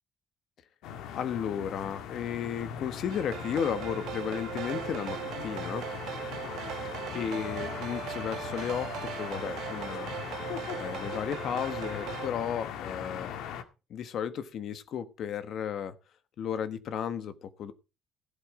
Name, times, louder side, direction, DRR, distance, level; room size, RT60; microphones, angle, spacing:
sound 1, 0.8-13.6, left 8 dB, 65° left, 1.8 m, -39 dB
voice 1, 1.1-5.8 7.1-10.4 10.8-13.3 13.9-15.9 16.4-17.7, left 8 dB, 45° left, 1.4 m, -34 dB
sound 2, 3.1-12.3, right 12 dB, 60° right, 1.4 m, -39 dB
16.0 x 8.0 x 4.9 m
cardioid pair, 170°, 0 cm